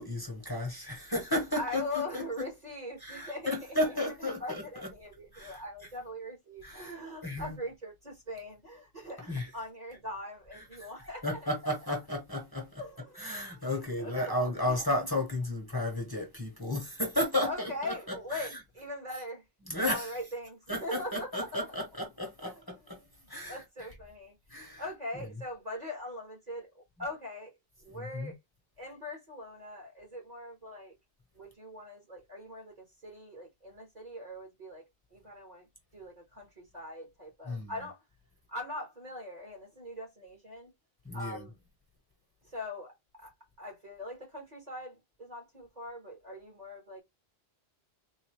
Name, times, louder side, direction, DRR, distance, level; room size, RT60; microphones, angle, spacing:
voice 1, 0.0-2.5 3.0-4.9 5.3-5.6 6.6-7.0 7.2-7.6 9.3-9.5 10.5-10.9 11.2-12.8 13.1-18.6 19.7-20.1 20.7-23.9 24.5-24.9 25.1-25.2 27.9-28.3 37.4-37.8 41.0-41.5, left 1 dB, 20° left, 1.1 m, -34 dB
voice 2, 1.5-3.8 4.0-11.4 12.8-13.7 14.0-15.1 17.4-19.4 19.8-21.7 22.4-22.5 23.2-26.7 27.0-27.5 27.8-28.3 28.8-30.9 31.3-34.8 35.1-35.7 35.9-38.0 38.5-40.7 41.1-41.5 42.5-42.9 43.2-43.3 43.6-47.0, left 1 dB, 40° right, 1.5 m, -41 dB
3.9 x 2.6 x 2.9 m
omnidirectional pair, 1.1 m